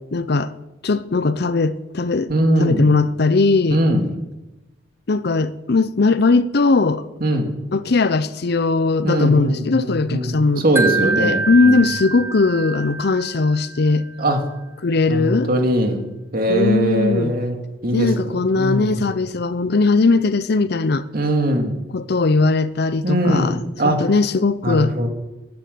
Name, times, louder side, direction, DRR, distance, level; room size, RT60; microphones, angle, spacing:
voice 1, 0.1-0.5 0.8-2.3 2.6-3.8 5.1-7.0 7.7-10.6 11.2-14.0 14.8-15.5 16.5-17.3 17.9-21.0 21.9-24.9, left 3 dB, 60° left, 0.7 m, -19 dB
voice 2, 2.3-2.8 3.7-4.0 7.2-7.5 9.0-11.9 14.2-14.4 15.1-16.1 16.3-17.6 17.8-18.1 18.6-19.0 21.1-21.7 23.0-24.0 24.6-25.1, right 1 dB, 55° right, 2.4 m, -20 dB
Wind chime, 10.8-13.9, right 4 dB, 10° right, 1.2 m, -25 dB
15.0 x 10.5 x 6.9 m
head